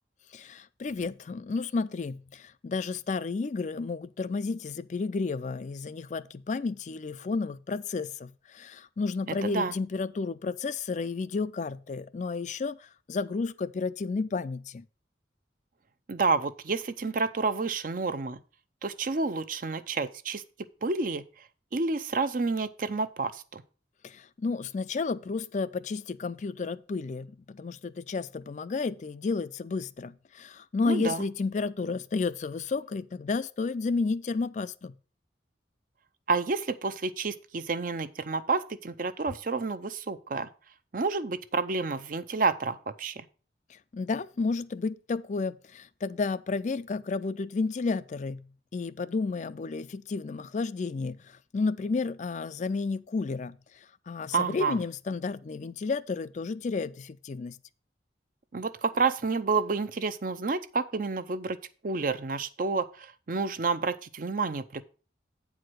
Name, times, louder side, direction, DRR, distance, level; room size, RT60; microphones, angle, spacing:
voice 1, 0.3-14.8 24.0-34.9 43.7-48.5 48.7-53.6 54.1-57.6, left 4 dB, 40° left, 0.4 m, -32 dB
voice 2, 9.3-9.7 16.1-18.4 18.8-20.4 20.8-21.2 21.7-23.6 30.9-31.2 36.3-40.5 40.9-43.2 54.3-54.8 58.5-61.6 61.8-64.8, right 4 dB, 50° right, 0.6 m, -29 dB
8.6 x 4.8 x 6.1 m
head